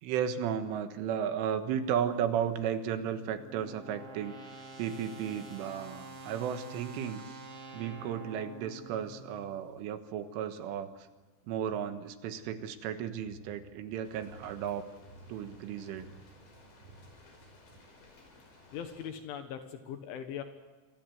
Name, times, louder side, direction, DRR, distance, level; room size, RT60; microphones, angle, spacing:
voice 1, 0.0-4.4 4.8-7.4 7.7-11.1 11.5-14.9 15.3-16.1, right 8 dB, 80° right, 8 dB, 3.9 m, -34 dB
sound 1, 2.4-9.5, right 2 dB, 65° right, 7.4 m, -48 dB
sound 2, 9.7-17.8, right 3 dB, 40° right, 4.0 m, -58 dB
sound 3, 14.0-19.1, left 2 dB, 60° left, 7.7 m, -58 dB
voice 2, 18.7-20.4, left 8 dB, 75° left, 7 dB, 3.9 m, -40 dB
27.5 x 23.0 x 8.0 m, 1.2 s
omnidirectional pair, 5.8 m